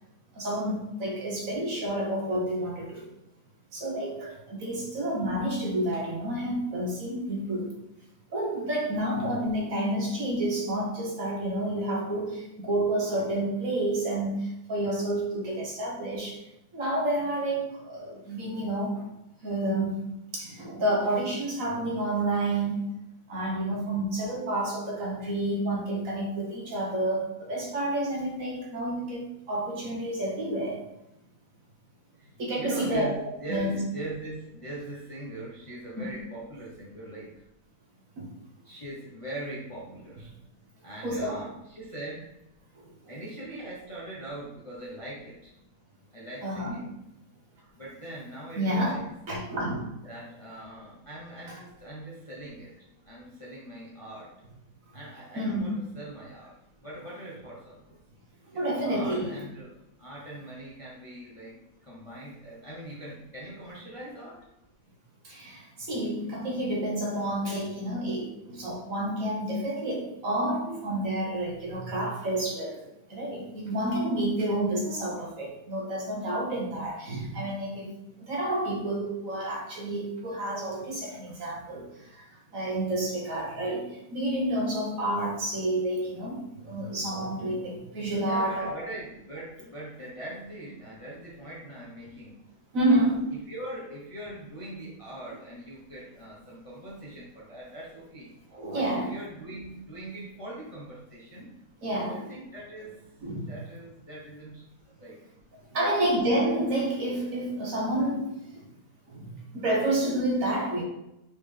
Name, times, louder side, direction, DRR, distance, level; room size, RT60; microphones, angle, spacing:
voice 1, 0.3-3.1 3.7-7.8 8.3-16.4 16.7-19.0 19.4-22.7 23.3-30.8 32.4-33.1 33.5-33.8 36.0-36.2 38.2-38.3 41.0-41.5 42.7-43.1 46.4-46.9 48.5-49.0 49.3-49.9 51.5-51.6 55.3-55.8 58.5-59.5 65.2-88.7 92.7-93.3 98.5-99.1 101.8-102.3 103.2-103.5 105.7-108.7 109.1-110.8, right 1 dB, 55° right, -2 dB, 1.3 m, -29 dB
voice 2, 32.2-37.3 38.6-40.4 40.8-42.3 43.1-45.5 46.1-46.9 47.7-49.1 50.0-52.7 53.0-54.3 54.9-57.8 58.5-59.7 60.0-64.4 88.2-92.4 92.8-93.1 93.5-98.3 98.7-101.5 101.9-102.9 103.5-104.6 105.0-105.2 105.8-106.0, right 1 dB, 30° left, -6 dB, 0.6 m, -41 dB
4.2 x 3.9 x 3.3 m, 0.86 s
omnidirectional pair, 1.9 m